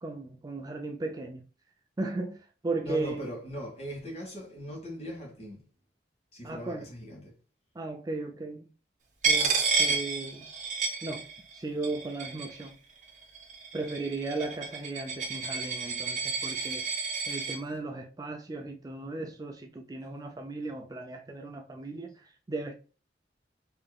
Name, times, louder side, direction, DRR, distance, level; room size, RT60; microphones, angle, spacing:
voice 1, 0.0-1.5 2.0-3.3 6.4-6.9 7.7-8.7 9.2-10.5 11.0-11.3 11.5-12.8 13.7-16.9 17.3-22.7, right 2 dB, 20° right, 0.4 m, -36 dB
voice 2, 2.8-5.7 6.3-7.4, equal, 35° left, 1.4 m, -40 dB
Coin (dropping), 9.2-11.6 11.8-12.7 13.4-17.6, right 4 dB, 45° right, 1.0 m, -30 dB
4.9 x 2.9 x 2.3 m
head